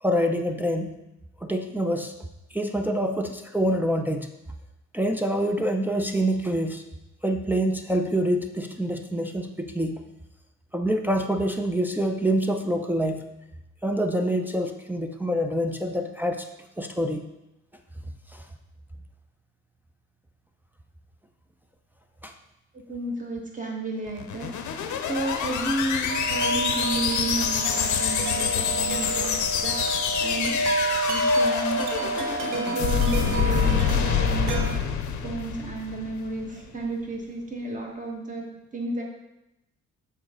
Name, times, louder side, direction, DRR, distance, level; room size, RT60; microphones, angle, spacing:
voice 1, 0.0-1.0 1.4-2.1 2.5-4.3 4.9-6.8 7.2-10.0 10.7-13.3 13.8-16.5 16.8-17.2 18.3-18.4 22.2-22.3, equal, 5° right, 3 dB, 0.5 m, -26 dB
voice 2, 22.7-30.6 31.1-34.8 35.2-38.5 38.7-39.0, right 2 dB, 25° right, 0 dB, 1.4 m, -32 dB
sound 1, 24.1-36.4, left 7 dB, 75° left, 0.7 m, -27 dB
Wind chime, 26.1-34.7, right 2 dB, 90° right, 0.7 m, -29 dB
6.6 x 4.1 x 3.7 m, 0.89 s
cardioid pair, 90°, 30 cm